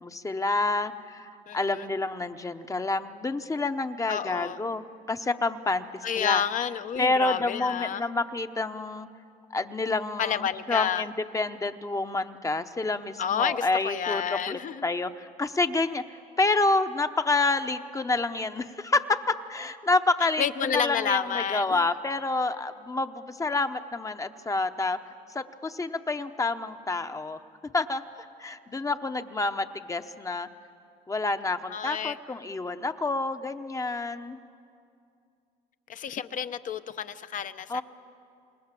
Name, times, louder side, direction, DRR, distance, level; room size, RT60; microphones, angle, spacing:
voice 1, 0.0-6.4 7.0-9.1 9.5-14.2 14.5-16.0 16.4-25.0 25.3-27.4 27.7-28.0 28.4-30.5 31.1-34.4 37.7-37.8, left 3 dB, 20° left, 9 dB, 0.9 m, -28 dB
voice 2, 1.5-1.9 4.1-4.6 6.0-8.0 10.2-11.0 13.2-14.8 20.4-21.8 31.7-32.2 35.9-37.8, left 8 dB, 50° left, 11 dB, 0.8 m, -30 dB
28.0 x 20.0 x 7.6 m, 2.4 s
cardioid pair, 110°, 17 cm